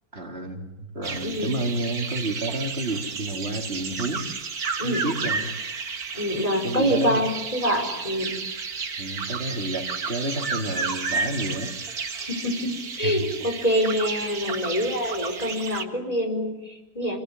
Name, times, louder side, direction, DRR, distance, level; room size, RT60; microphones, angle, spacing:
voice 1, 0.1-4.2 4.5-5.5 6.6-7.3 9.0-11.7 13.0-13.3, right 2 dB, 40° right, 2 dB, 3.9 m, -30 dB
sound 1, 1.0-15.8, right 5 dB, 70° right, 2.2 m, -32 dB
voice 2, 1.2-1.5 4.8-5.3 6.1-8.3 12.2-17.2, equal, 25° left, 2 dB, 4.6 m, -26 dB
28.5 x 20.5 x 9.8 m, 0.99 s
omnidirectional pair, 1.6 m